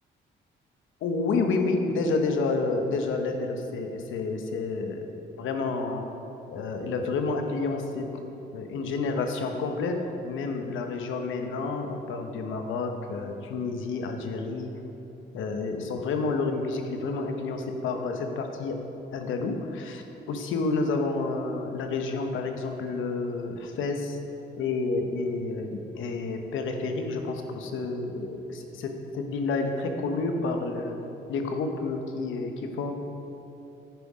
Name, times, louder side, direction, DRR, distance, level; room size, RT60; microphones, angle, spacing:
voice 1, 1.0-5.1 5.4-6.1 6.5-8.2 8.5-14.7 15.3-18.8 19.1-24.2 24.5-31.0 31.3-32.9, left 3 dB, 80° left, 5 dB, 0.9 m, -29 dB
10.5 x 5.4 x 4.9 m, 3.0 s
cardioid pair, 90°, 20 cm